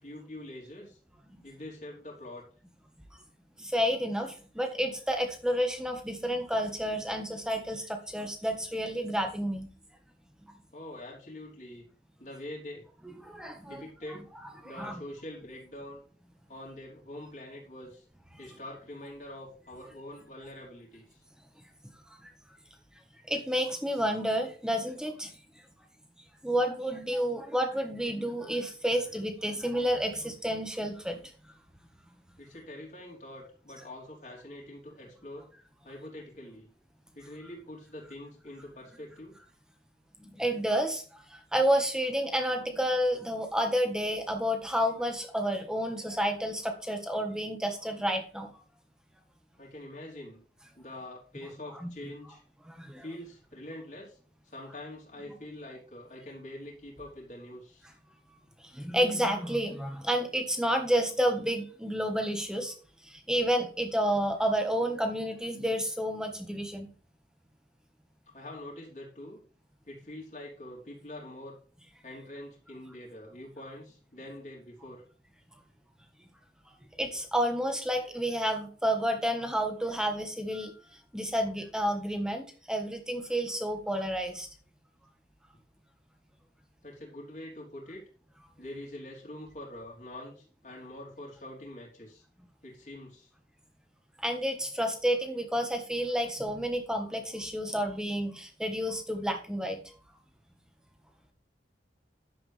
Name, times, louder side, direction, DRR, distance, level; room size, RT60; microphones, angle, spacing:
voice 1, 0.0-1.0 1.4-2.4 10.7-11.8 12.2-12.9 13.6-14.2 14.6-16.0 16.5-18.0 18.4-21.2 32.4-35.5 35.8-36.7 37.1-39.4 49.6-50.4 50.7-52.4 53.0-54.2 54.5-57.9 68.3-69.4 69.9-71.6 72.0-75.1 86.8-88.0 88.6-92.2 92.6-93.3, left 1 dB, 40° left, -3 dB, 3.3 m, -44 dB
voice 2, 3.6-9.7 13.0-14.2 14.6-14.9 22.2-22.3 23.3-25.3 26.4-31.2 40.2-41.0 41.3-48.5 51.8-51.9 52.6-53.0 58.7-62.7 63.0-66.9 77.0-80.7 81.1-84.5 94.2-99.8, equal, 5° right, 5 dB, 1.4 m, -30 dB
11.0 x 7.7 x 3.4 m, 0.41 s
head